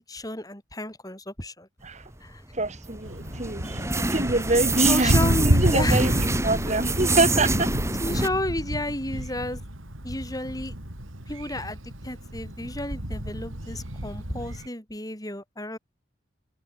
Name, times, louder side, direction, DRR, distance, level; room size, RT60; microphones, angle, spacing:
voice 1, 0.1-1.7 2.2-2.4 4.8-6.2 8.0-9.6 10.0-10.7 11.3-15.8, left 1 dB, 20° left, 6.6 m, -31 dB
sound 1, 2.4-8.3, right 2 dB, 15° right, 4.3 m, -26 dB
voice 2, 2.5-5.1 5.5-6.1 6.4-7.7, right 2 dB, 35° right, 1.7 m, -25 dB
Thunder, 3.0-14.7, equal, 85° right, 5.0 m, -30 dB
open air
head